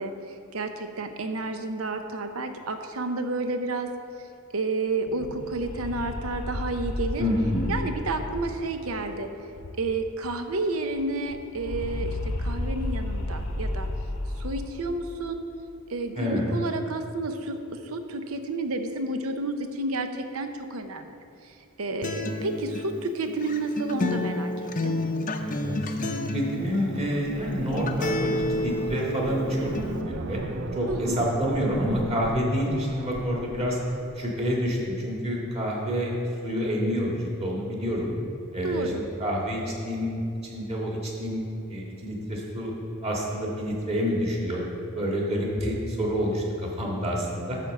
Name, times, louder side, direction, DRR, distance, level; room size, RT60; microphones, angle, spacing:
voice 1, 0.0-3.9 4.5-7.2 7.7-9.3 9.8-13.9 14.4-15.4 15.9-21.2 21.4-25.0 30.9-31.2 38.6-39.1, right 2 dB, 80° right, 7 dB, 0.7 m, -31 dB
sound 1, 4.9-10.2 10.5-10.6 10.9-15.2, left 1 dB, 80° left, 0.9 m, -33 dB
voice 2, 7.2-7.7 16.2-16.5 25.4-26.0 26.3-30.4 30.7-33.8 34.2-36.2 36.4-38.1 38.5-42.7 43.0-44.6 44.9-47.6, equal, 30° right, -3 dB, 1.9 m, -28 dB
Acoustic guitar, 22.0-30.0, left 1 dB, 40° left, 0.6 m, -30 dB
sound 2, 25.8-34.8, right 4 dB, 60° right, 0.4 m, -39 dB
12.0 x 4.5 x 7.3 m, 2.6 s
head